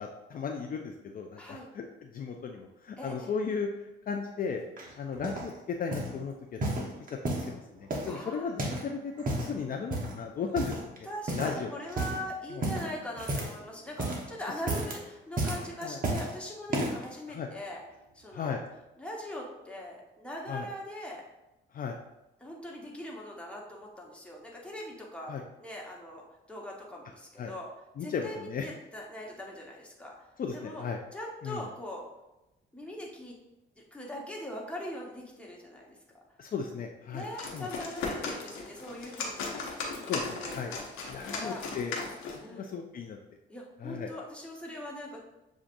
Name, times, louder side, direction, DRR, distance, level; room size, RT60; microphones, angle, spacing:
voice 1, 0.0-1.8 2.1-3.7 4.1-4.6 5.0-5.5 5.8-6.3 6.6-6.7 7.5-9.1 9.4-10.7 11.3-11.7 12.5-12.7 15.8-16.0 17.3-17.5 18.3-18.6 20.5-20.7 21.7-22.0 25.3-25.4 27.4-27.5 28.0-28.6 30.4-31.0 31.4-31.6 36.4-37.3 37.5-37.7 40.1-40.7 41.1-41.9 42.5-43.2 43.8-44.1, left 6 dB, 45° left, 2 dB, 0.4 m, -35 dB
voice 2, 1.4-1.7 3.0-3.3 8.1-8.6 11.1-17.8 18.1-18.6 19.0-21.2 22.4-27.7 28.0-30.1 30.5-30.9 31.1-32.1 32.7-33.4 33.8-36.0 37.1-40.1 40.4-40.8 41.2-41.6 42.0-42.1 42.4-42.7 43.5-45.2, left 1 dB, 5° left, -3 dB, 1.2 m, -41 dB
sound 1, 4.8-5.5 5.9-6.2 6.6-7.5 7.9-8.9 9.1-9.5 9.9-10.2 10.5-11.0 11.3-11.6 11.9-12.2 12.6-13.6 13.9-14.3 14.6-15.0 15.4-16.3 16.7-17.1 17.7-17.8, right 1 dB, 45° right, 1.0 m, -32 dB
sound 2, 37.2-42.5, left 4 dB, 90° left, 0.8 m, -37 dB
7.1 x 2.5 x 2.6 m, 0.94 s
cardioid pair, 90°, 20 cm